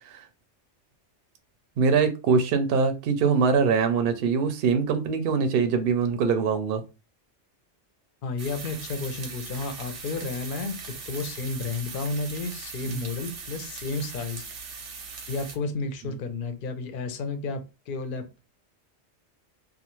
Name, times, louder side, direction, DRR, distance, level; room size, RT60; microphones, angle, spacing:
voice 1, 1.8-6.8 12.9-13.0, right 5 dB, 65° right, 0.7 m, -23 dB
voice 2, 8.2-14.5 15.3-18.4, left 3 dB, 55° left, 0.7 m, -32 dB
sound 1, 8.4-15.6, right 4 dB, 90° right, 1.0 m, -40 dB
2.4 x 2.3 x 3.0 m
omnidirectional pair, 1.2 m